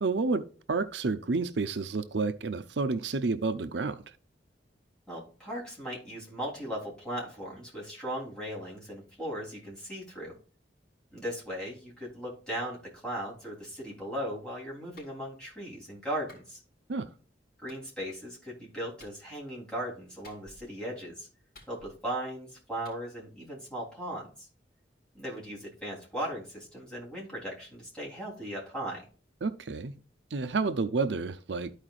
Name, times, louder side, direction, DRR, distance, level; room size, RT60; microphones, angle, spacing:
voice 1, 0.0-4.0 16.9-17.1 29.4-29.9 30.3-31.7, right 3 dB, 75° right, 0.6 m, -30 dB
voice 2, 5.1-10.3 11.1-16.6 17.6-21.3 21.7-24.5 25.1-29.1, equal, 5° left, 3.4 m, -38 dB
Clapping, 15.0-15.2 16.3-16.5 17.7-17.8 19.0-19.2 20.2-20.7 21.5-22.1 22.8-23.0, left 2 dB, 55° left, 3.2 m, -54 dB
13.0 x 4.9 x 2.5 m
head